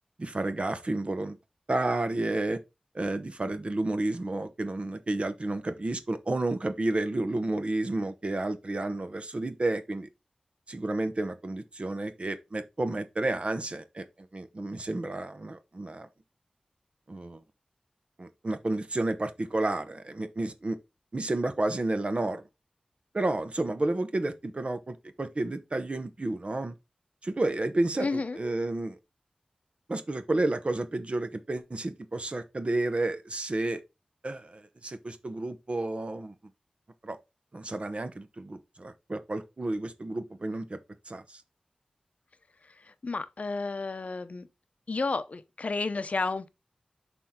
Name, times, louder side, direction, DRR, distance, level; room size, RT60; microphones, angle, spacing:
voice 1, 0.2-1.4 1.7-2.6 2.9-10.1 10.7-16.1 17.1-17.4 18.2-20.8 21.1-22.4 23.1-26.7 27.2-29.0 29.9-33.8 34.2-36.3 37.0-37.2 37.5-40.8 41.1-41.4, right 2 dB, 50° right, 0.9 m, -31 dB
voice 2, 28.0-28.4 43.0-44.5 44.9-46.5, left 3 dB, 60° left, 0.7 m, -31 dB
7.0 x 4.5 x 3.7 m
cardioid pair, 45°, 3 cm